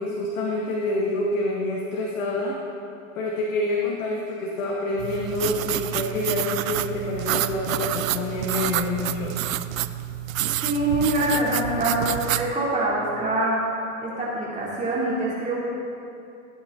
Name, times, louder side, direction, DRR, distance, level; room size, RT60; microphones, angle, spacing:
voice 1, 0.0-2.6 3.2-9.4, left 2 dB, 85° left, -3 dB, 1.9 m, -27 dB
sound 1, 5.0-12.5, right 13 dB, 90° right, 0.6 m, -28 dB
voice 2, 10.6-13.6 14.0-15.5, right 1 dB, 20° right, -7 dB, 3.2 m, -24 dB
16.0 x 9.4 x 3.9 m, 2.6 s
hypercardioid pair, 115°, 39 cm